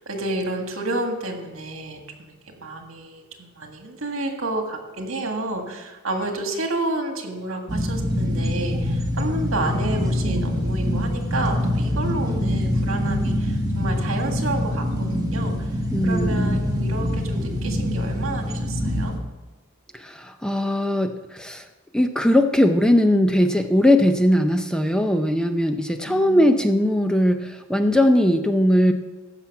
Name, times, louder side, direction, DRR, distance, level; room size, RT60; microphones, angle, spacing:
voice 1, 0.0-15.7 16.0-19.1 26.1-26.6, right 2 dB, 75° right, 4 dB, 1.7 m, -30 dB
sound 1, 7.7-19.2, left 1 dB, 20° right, 1.4 m, -24 dB
voice 2, 15.9-16.6 19.9-21.6 21.9-28.9, left 1 dB, 5° left, 7 dB, 0.5 m, -19 dB
14.5 x 5.9 x 5.9 m, 1.2 s
head